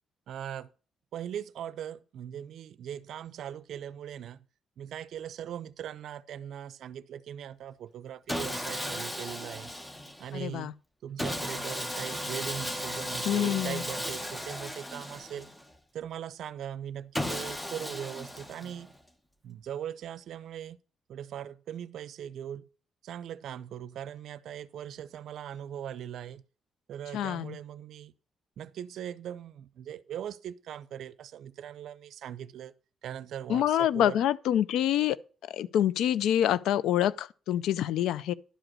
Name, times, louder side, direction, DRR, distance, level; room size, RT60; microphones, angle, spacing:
voice 1, 0.3-0.7 1.1-4.4 4.8-9.7 10.2-10.7 11.0-15.5 15.9-18.9 19.4-20.8 21.1-22.7 23.0-26.4 26.9-28.1 28.6-32.7 33.0-34.2, right 10 dB, 70° right, 0.5 m, -40 dB
Sawing, 8.3-10.3 11.2-15.7 17.1-19.0, equal, 10° left, 1.0 m, -35 dB
voice 2, 10.3-10.7 13.3-13.8 27.1-27.6 33.5-35.2 35.4-38.3, left 11 dB, 85° left, 0.4 m, -26 dB
11.5 x 5.0 x 6.1 m
cardioid pair, 90°, 0 cm